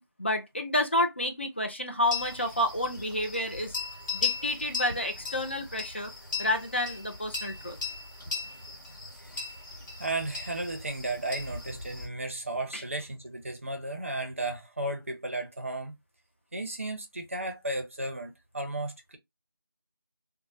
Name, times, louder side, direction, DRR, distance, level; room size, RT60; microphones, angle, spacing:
voice 1, 0.0-3.8 4.1-6.1 6.4-7.8 12.7-12.8, left 1 dB, 30° left, 0.4 m, -30 dB
sound 1, 2.1-12.1, left 5 dB, 55° left, 1.6 m, -37 dB
voice 2, 8.9-9.6 10.0-16.0 16.5-19.2, right 2 dB, 35° right, 0.6 m, -34 dB
3.1 x 2.1 x 2.6 m
figure-of-eight pair, 170°, 12 cm